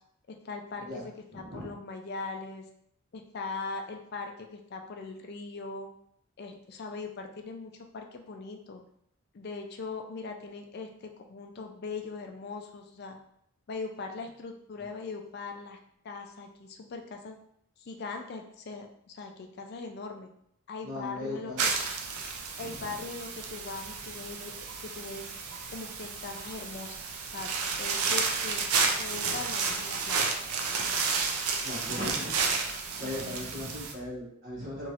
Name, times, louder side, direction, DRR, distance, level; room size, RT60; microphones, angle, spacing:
voice 1, 0.3-2.6 3.1-5.9 6.4-8.8 9.3-13.2 13.7-15.8 16.0-17.4 17.8-20.3 20.7-21.5 22.6-24.5 24.8-25.3 25.7-28.6 29.0-30.4 31.9-32.1 33.0-33.6, left 4 dB, 45° left, 4 dB, 0.3 m, -40 dB
voice 2, 1.3-1.7 20.8-21.6 22.8-22.9 31.6-32.7 33.0-34.9, left 1 dB, 55° right, -9 dB, 1.2 m, -38 dB
sound 1, 21.6-33.9, right 5 dB, 85° right, 0.4 m, -31 dB
3.0 x 2.9 x 2.4 m, 0.71 s
head